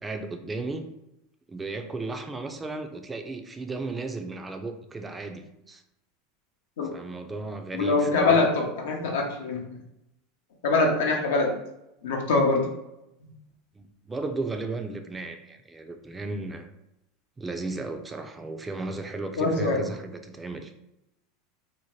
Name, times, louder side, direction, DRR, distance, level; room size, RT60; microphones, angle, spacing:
voice 1, 0.0-0.9 1.5-5.8 6.9-8.4 13.8-16.7 17.4-20.7, right 3 dB, 15° right, 6 dB, 0.4 m, -35 dB
voice 2, 7.7-9.6 10.6-11.5 12.0-12.7 19.4-19.8, left 3 dB, 80° left, 1 dB, 0.6 m, -23 dB
2.7 x 2.1 x 3.1 m, 0.88 s
hypercardioid pair, 100°, 0 cm